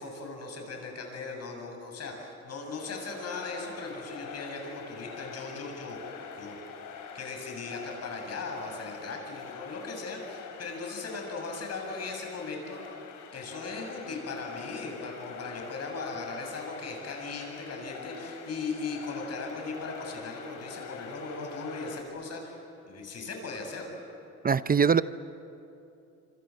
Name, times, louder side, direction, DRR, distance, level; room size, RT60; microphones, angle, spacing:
voice 1, 0.0-6.0 6.4-6.6 7.1-13.0 13.3-23.9, left 3 dB, 55° left, 2 dB, 7.6 m, -38 dB
sound 1, 2.5-22.0, left 6 dB, 90° left, 3.7 m, -45 dB
voice 2, 24.4-25.0, right 6 dB, 30° right, 14 dB, 0.6 m, -22 dB
26.5 x 26.5 x 7.9 m, 2.7 s
cardioid pair, 90°, 30 cm